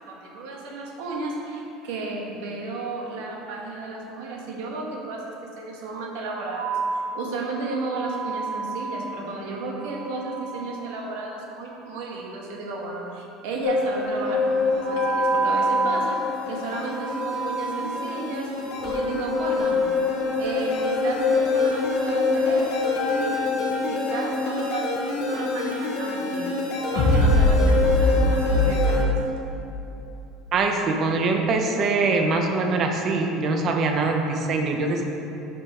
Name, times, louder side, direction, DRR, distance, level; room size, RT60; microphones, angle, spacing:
voice 1, 0.1-6.8 7.1-16.2 16.5-18.5 18.8-19.9 20.4-29.1, right 3 dB, 80° right, -1 dB, 1.3 m, -33 dB
sound 1, 6.5-11.9 14.8-19.6, right 4 dB, 90° left, 1.4 m, -30 dB
sound 2, 13.6-29.0, left 3 dB, 60° left, 1.0 m, -24 dB
voice 2, 30.5-35.1, right 3 dB, 40° right, 3 dB, 0.7 m, -23 dB
6.0 x 5.4 x 4.8 m, 3.0 s
cardioid pair, 145°, 0 cm